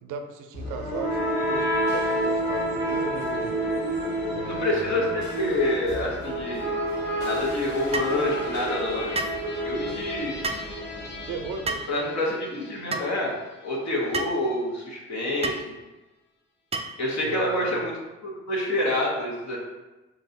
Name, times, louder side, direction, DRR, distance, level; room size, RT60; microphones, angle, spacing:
voice 1, 0.0-3.5 4.3-5.3 11.3-11.9 17.2-17.9, right 6 dB, 65° right, 6 dB, 0.6 m, -36 dB
sound 1, 0.5-12.4, equal, 75° left, 1.4 m, -29 dB
voice 2, 4.4-6.8 7.2-9.1 9.6-10.4 11.9-13.3 13.6-15.7 17.0-17.9 18.2-19.6, left 1 dB, 50° left, -3 dB, 1.3 m, -27 dB
sound 2, 7.9-8.2 9.1-9.4 10.4-10.7 11.7-11.9 12.9-13.1 14.1-14.4 15.4-15.6 16.7-17.0, right 3 dB, 20° right, 0.4 m, -29 dB
4.4 x 2.9 x 2.7 m, 1.1 s
hypercardioid pair, 40°, 36 cm